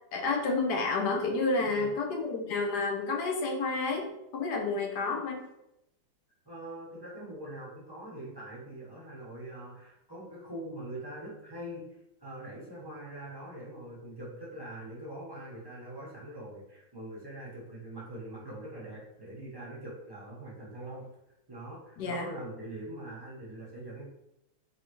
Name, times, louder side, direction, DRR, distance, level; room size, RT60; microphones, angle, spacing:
voice 1, 0.1-5.4 22.0-22.3, left 3 dB, 70° left, 2 dB, 1.1 m, -30 dB
voice 2, 6.4-21.1 21.5-24.1, right 1 dB, 20° right, -6 dB, 0.6 m, -43 dB
4.1 x 3.4 x 3.0 m, 0.84 s
omnidirectional pair, 2.2 m